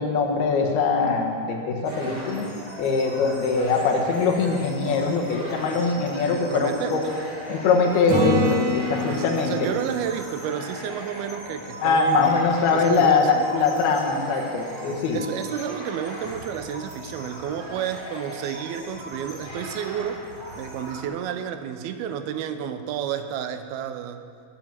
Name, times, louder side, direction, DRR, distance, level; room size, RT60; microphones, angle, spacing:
voice 1, 0.0-2.5 2.8-7.0 7.5-9.7 11.8-15.2, left 4 dB, 80° left, 1 dB, 3.4 m, -22 dB
sound 1, 1.8-21.0, equal, 20° right, 4.4 m, -39 dB
voice 2, 5.9-7.1 9.1-12.4 12.7-13.4 14.9-20.2 20.6-24.3, right 9 dB, 85° right, 9 dB, 2.6 m, -31 dB
Acoustic guitar / Strum, 8.1-11.9 16.7-16.8, equal, 55° right, 3.2 m, -29 dB
20.0 x 7.7 x 7.4 m, 2.3 s
omnidirectional pair, 4.5 m